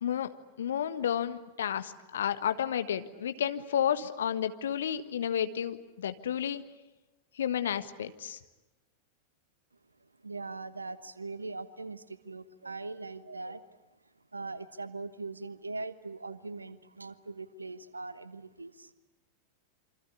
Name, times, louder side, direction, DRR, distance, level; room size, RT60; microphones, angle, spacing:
voice 1, 0.6-6.6 7.4-8.4, left 9 dB, 65° left, 10 dB, 1.4 m, -31 dB
voice 2, 10.2-13.8 14.3-18.9, right 3 dB, 80° right, 14 dB, 1.3 m, -41 dB
27.5 x 25.5 x 8.4 m, 1.1 s
figure-of-eight pair, 90°, 0 cm